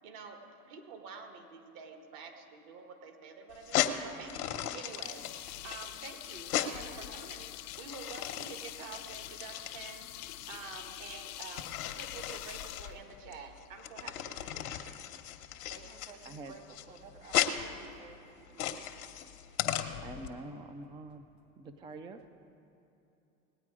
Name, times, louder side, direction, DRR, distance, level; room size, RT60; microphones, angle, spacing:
voice 1, 0.0-4.4 4.7-7.5 7.8-10.1 10.5-14.7, right 5 dB, 55° right, 5 dB, 1.7 m, -48 dB
sound 1, 3.5-20.3, left 10 dB, 80° left, 1.0 m, -37 dB
sound 2, 4.9-13.7, left 15 dB, 40° left, 0.6 m, -45 dB
voice 2, 15.7-18.1 18.4-18.7, right 4 dB, 80° right, -2 dB, 2.7 m, -54 dB
voice 3, 20.0-21.3 21.6-22.3, right 2 dB, 10° right, 9 dB, 0.3 m, -45 dB
19.0 x 8.8 x 4.8 m, 2.9 s
hypercardioid pair, 100°, 44 cm